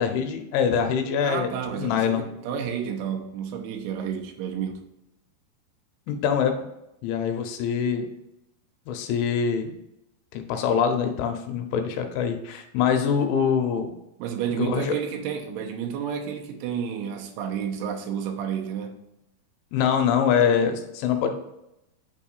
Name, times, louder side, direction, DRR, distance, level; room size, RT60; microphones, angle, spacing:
voice 1, 0.0-2.2 6.1-6.6 7.0-8.1 8.9-9.7 10.3-13.9 14.6-14.9 19.7-21.3, left 7 dB, 85° left, 6 dB, 3.1 m, -24 dB
voice 2, 1.2-4.9 14.2-19.0, right 8 dB, 90° right, 2 dB, 3.2 m, -31 dB
8.9 x 5.7 x 2.4 m, 0.87 s
omnidirectional pair, 5.4 m